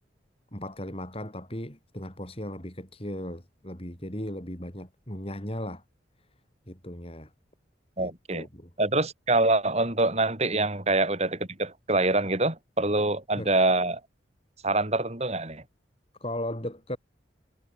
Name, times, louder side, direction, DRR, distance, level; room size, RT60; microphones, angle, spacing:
voice 1, 0.5-5.8 6.7-7.3 8.0-8.7 10.5-10.7 13.0-13.1 13.3-13.5 16.2-17.0, left 1 dB, 30° left, 7.5 m, -37 dB
voice 2, 8.0-8.5 8.8-14.0 14.6-15.6, right 2 dB, 35° right, 3.6 m, -25 dB
head